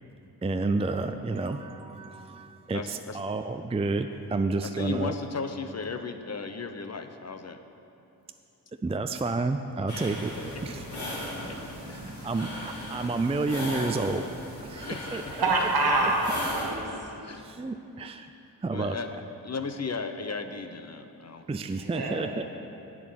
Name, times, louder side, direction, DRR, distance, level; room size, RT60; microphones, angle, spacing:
voice 1, 0.4-5.1 8.8-10.3 10.6-10.9 12.0-14.3 14.6-15.2 17.3-18.3 18.6-19.0 21.5-22.4, right 3 dB, 15° right, 7 dB, 0.4 m, -30 dB
voice 2, 2.7-3.2 4.6-7.6 9.9-10.0 11.5-11.6 14.9-15.3 17.2-17.4 18.7-19.1 19.4-21.4, left 4 dB, 40° left, 8 dB, 0.7 m, -35 dB
sound 1, 9.9-16.7, left 1 dB, 90° left, 2.6 m, -37 dB
voice 3, 15.3-16.9 21.8-22.3, right 2 dB, 70° right, 1 dB, 1.7 m, -26 dB
8.4 x 7.0 x 7.8 m, 2.8 s
cardioid pair, 45°, 39 cm